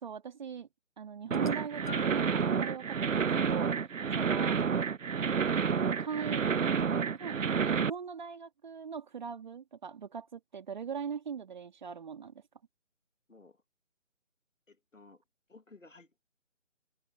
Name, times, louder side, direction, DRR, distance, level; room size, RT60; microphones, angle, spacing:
voice 1, 0.0-0.7 1.0-3.7 4.1-4.6 6.0-6.4 7.1-7.3 7.6-12.3, right 6 dB, 40° right, 2.6 m, -40 dB
sound 1, 1.2-2.4 3.3-3.5 4.5-4.6, left 7 dB, 40° left, 1.0 m, -47 dB
sound 2, 1.3-7.9, right 6 dB, 80° right, 0.7 m, -29 dB
voice 2, 14.7-15.2 15.5-16.2, left 3 dB, 85° left, 3.0 m, -56 dB
figure-of-eight pair, 155°, 37 cm